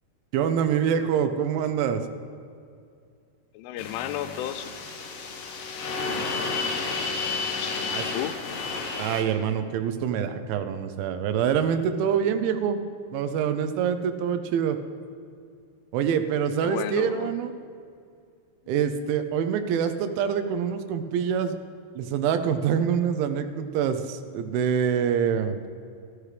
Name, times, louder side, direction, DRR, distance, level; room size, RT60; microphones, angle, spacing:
voice 1, 0.3-2.0 7.9-8.0 9.0-12.8 13.1-14.8 15.9-17.5 18.7-21.6 22.0-25.6, right 8 dB, 80° right, 9 dB, 3.0 m, -25 dB
voice 2, 3.5-4.7 7.6-8.4 16.6-17.3, left 12 dB, 90° left, 10 dB, 3.0 m, -33 dB
sound 1, 3.8-9.2, left 4 dB, 70° left, 2.2 m, -31 dB
14.5 x 12.5 x 3.3 m, 2.3 s
omnidirectional pair, 5.4 m